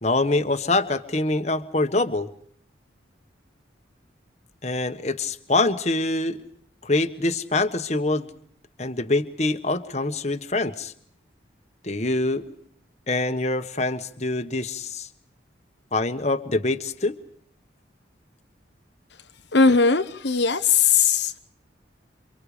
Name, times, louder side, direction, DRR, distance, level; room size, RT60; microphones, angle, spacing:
voice 1, 0.0-2.3 4.6-6.4 6.8-8.3 8.8-10.9 11.8-12.4 13.1-15.1 15.9-17.1, left 2 dB, 35° left, 8 dB, 1.4 m, -25 dB
voice 2, 19.5-21.4, left 5 dB, 70° left, 7 dB, 1.0 m, -19 dB
28.5 x 25.0 x 5.1 m, 0.63 s
head